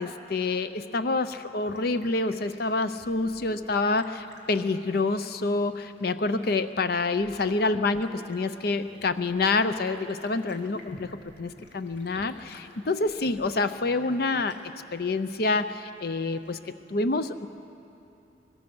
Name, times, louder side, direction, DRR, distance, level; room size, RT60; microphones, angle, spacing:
voice 1, 0.0-11.1 11.4-14.6 14.9-16.6 16.9-17.5, left 3 dB, 55° left, 11 dB, 0.6 m, -27 dB
sound 1, 1.6-16.7, left 2 dB, 75° left, 2.5 m, -53 dB
23.5 x 21.5 x 6.2 m, 2.8 s
head